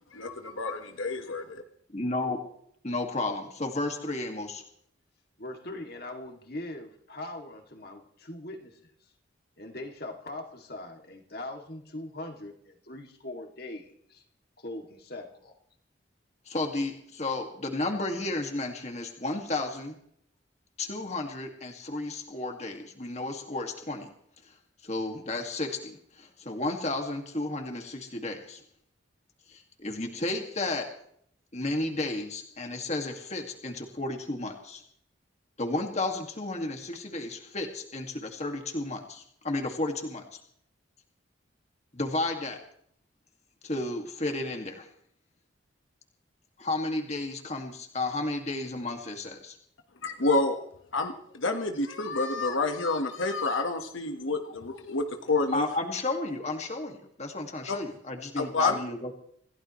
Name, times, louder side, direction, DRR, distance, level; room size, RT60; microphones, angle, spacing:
voice 1, 0.1-1.6 50.0-50.7 50.9-55.7 57.7-57.8 58.4-58.8, left 3 dB, 85° left, 5 dB, 1.5 m, -29 dB
voice 2, 1.9-2.4 2.8-4.6 16.5-20.0 20.8-24.1 24.8-28.6 29.5-30.9 31.5-34.8 35.6-40.2 41.9-42.6 43.6-44.9 46.6-49.6 55.5-59.2, left 2 dB, 35° left, 3 dB, 2.1 m, -32 dB
voice 3, 5.4-8.8 9.6-14.2 14.6-15.6, left 1 dB, 50° left, 3 dB, 2.5 m, -41 dB
27.0 x 15.5 x 3.2 m, 0.67 s
head